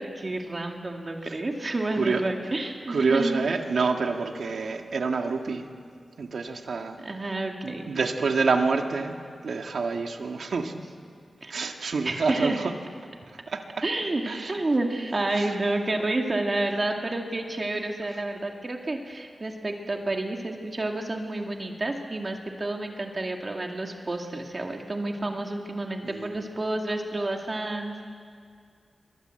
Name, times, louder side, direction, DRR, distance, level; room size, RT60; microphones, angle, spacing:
voice 1, 0.0-3.4 7.0-7.9 11.4-11.6 12.0-12.6 13.8-28.1, right 2 dB, 40° right, 2 dB, 2.3 m, -30 dB
voice 2, 2.9-5.6 6.2-7.0 7.6-9.2 9.4-10.8 11.5-12.7 13.5-13.6 14.3-14.6 15.4-15.6 26.0-26.4, right 4 dB, 85° right, 4 dB, 1.9 m, -27 dB
27.0 x 24.0 x 7.9 m, 2.2 s
wide cardioid pair, 90°, 0 cm